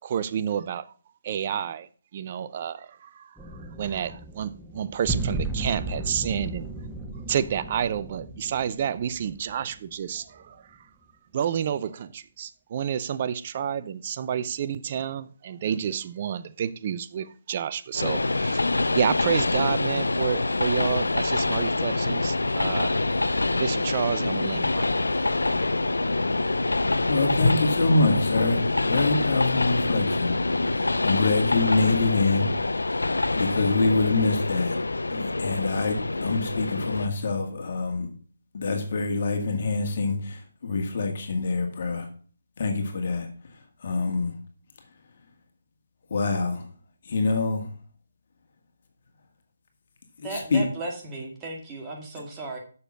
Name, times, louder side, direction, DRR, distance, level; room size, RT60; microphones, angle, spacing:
voice 1, 0.0-0.9 1.2-1.9 2.1-6.7 7.3-10.8 11.3-18.6 18.9-23.0 23.6-24.9, right 8 dB, 40° right, 0.5 m, -30 dB
sound 1, 3.4-10.2, right 2 dB, ahead, 0.9 m, -35 dB
Train, 17.9-37.1, left 2 dB, 90° left, 0.6 m, -26 dB
voice 2, 27.1-30.3 31.0-32.5 32.7-32.8 33.3-34.8 35.1-38.1 38.5-42.1 42.6-43.3 43.8-44.3 46.1-46.7 47.1-47.6 50.2-50.6, left 3 dB, 50° left, 2.1 m, -25 dB
voice 3, 50.2-52.6, right 2 dB, 20° right, 2.3 m, -35 dB
6.9 x 6.9 x 6.0 m
figure-of-eight pair, 150°, 0 cm